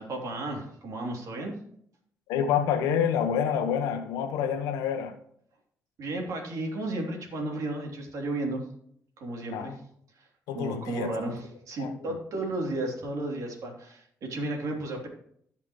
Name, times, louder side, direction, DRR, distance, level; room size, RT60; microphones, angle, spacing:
voice 1, 0.0-1.6 6.0-8.7 9.2-9.8 10.1-10.3 10.5-15.1, right 2 dB, 65° right, 1 dB, 3.1 m, -33 dB
voice 2, 2.3-5.2 9.5-9.7 10.5-11.1 11.8-11.9, left 8 dB, 85° left, 7 dB, 1.1 m, -27 dB
16.5 x 6.0 x 3.1 m, 0.66 s
supercardioid pair, 55°, 6 cm